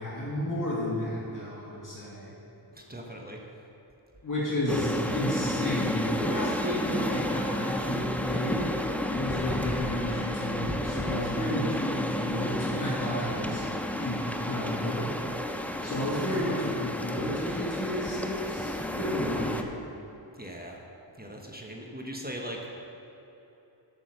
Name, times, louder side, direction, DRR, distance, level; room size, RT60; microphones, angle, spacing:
voice 1, 0.0-2.3 4.2-8.8 9.1-13.7 14.0-15.1 15.8-19.7, left 1 dB, 40° left, -7 dB, 2.0 m, -32 dB
voice 2, 2.7-3.4 11.4-11.7 20.3-20.8 21.2-22.8, equal, 20° right, 0 dB, 1.1 m, -40 dB
sound 1, 4.7-19.6, left 1 dB, 5° left, 0.6 m, -31 dB
7.8 x 6.3 x 6.6 m, 2.9 s
cardioid pair, 45°, 47 cm